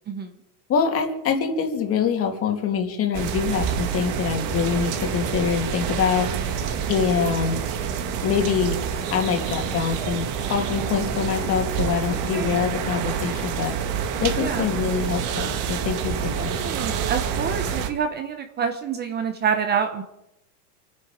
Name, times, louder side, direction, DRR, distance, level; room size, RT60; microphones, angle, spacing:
voice 1, 0.7-7.6 8.2-8.8 9.1-13.8 14.2-16.5, left 6 dB, 30° left, 4 dB, 2.7 m, -25 dB
sound 1, 3.1-17.9, right 7 dB, 40° right, 2.0 m, -27 dB
voice 2, 14.4-14.7 16.4-20.0, right 7 dB, 20° right, 7 dB, 1.0 m, -27 dB
28.5 x 9.6 x 5.1 m, 0.88 s
supercardioid pair, 145°, 46 cm